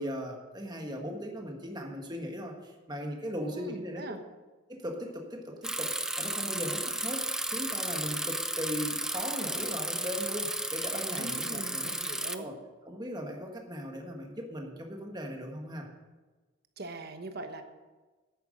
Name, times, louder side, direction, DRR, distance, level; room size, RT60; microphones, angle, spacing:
voice 1, 0.0-4.0 4.7-11.9 12.4-12.5 12.8-15.9, equal, 20° right, 2 dB, 1.4 m, -38 dB
voice 2, 3.4-4.2 11.2-12.5 16.8-17.6, right 2 dB, 50° right, 7 dB, 1.1 m, -41 dB
Bicycle, 5.6-12.3, right 1 dB, 5° right, 0.4 m, -33 dB
10.0 x 9.1 x 6.4 m, 1.3 s
head